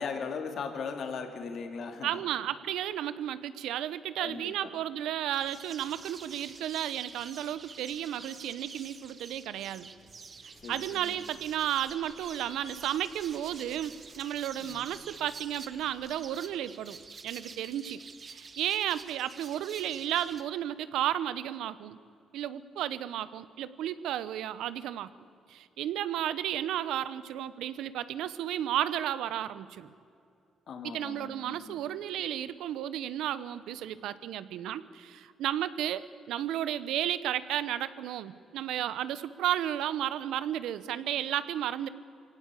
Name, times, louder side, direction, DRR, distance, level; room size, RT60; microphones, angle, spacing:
voice 1, 0.0-2.2 4.2-4.7 10.6-11.2 14.6-14.9 30.7-31.8, left 5 dB, 60° left, 5 dB, 2.8 m, -38 dB
voice 2, 2.0-9.9 10.7-17.0 17.2-18.0 18.3-22.0 22.3-25.1 25.5-29.9 30.8-41.9, right 11 dB, 85° right, 15 dB, 0.9 m, -33 dB
sound 1, 5.3-20.4, right 5 dB, 40° right, 1.4 m, -48 dB
sound 2, 10.5-16.2, equal, 5° left, 4.1 m, -57 dB
24.0 x 17.5 x 8.4 m, 2.5 s
cardioid pair, 90°, 0 cm